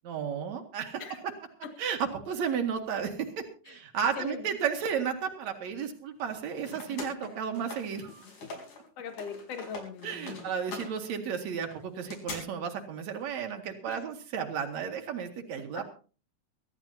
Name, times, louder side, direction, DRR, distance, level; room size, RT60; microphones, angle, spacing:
voice 1, 0.0-1.0 1.8-8.3 10.0-15.8, right 7 dB, 60° right, 4 dB, 3.1 m, -33 dB
voice 2, 4.2-4.7 8.2-10.5 13.8-14.0 15.7-15.8, left 6 dB, 55° left, 5 dB, 2.9 m, -42 dB
sound 1, 6.2-8.8 9.1-12.4, left 3 dB, 70° left, 5.3 m, -43 dB
23.0 x 13.0 x 2.8 m, 0.37 s
omnidirectional pair, 3.7 m